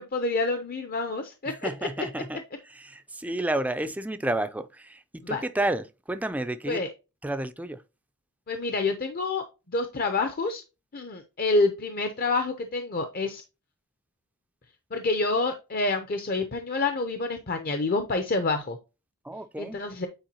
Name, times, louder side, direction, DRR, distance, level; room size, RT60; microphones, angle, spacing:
voice 1, 0.0-1.7 5.3-5.4 6.7-6.9 8.5-10.6 10.9-13.4 14.9-18.8 19.6-20.1, left 3 dB, 40° left, 0.7 m, -28 dB
voice 2, 1.5-6.8 7.2-7.8 19.2-19.8, right 1 dB, 5° right, 0.4 m, -31 dB
8.8 x 4.5 x 2.8 m
head